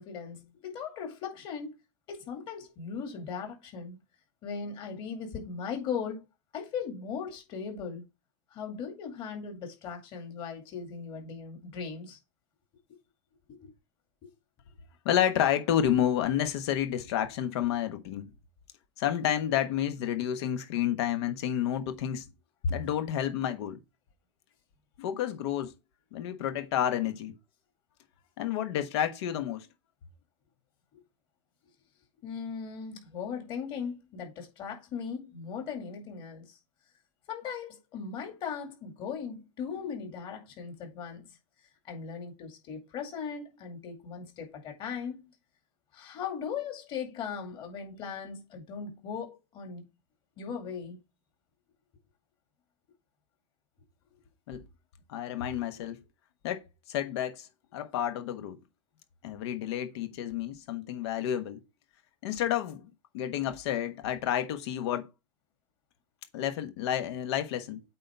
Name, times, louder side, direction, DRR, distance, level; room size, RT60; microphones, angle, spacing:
voice 1, 0.0-1.8 2.1-4.0 4.4-6.2 6.5-8.0 8.5-12.2 13.5-13.7 14.2-14.3 32.2-36.6 37.3-41.2 41.9-45.2 45.9-49.9 50.4-51.0 55.3-55.4, left 6 dB, 30° left, 2.3 m, -38 dB
voice 2, 15.0-18.3 19.0-22.3 22.6-23.8 25.0-25.7 26.1-27.4 28.4-29.7 54.5-54.7 55.1-56.0 56.4-56.6 56.9-57.5 57.7-58.6 59.2-61.6 62.2-62.9 63.1-65.1 66.3-67.8, left 10 dB, 60° left, 1.2 m, -30 dB
8.4 x 4.1 x 3.4 m
supercardioid pair, 155°, 16 cm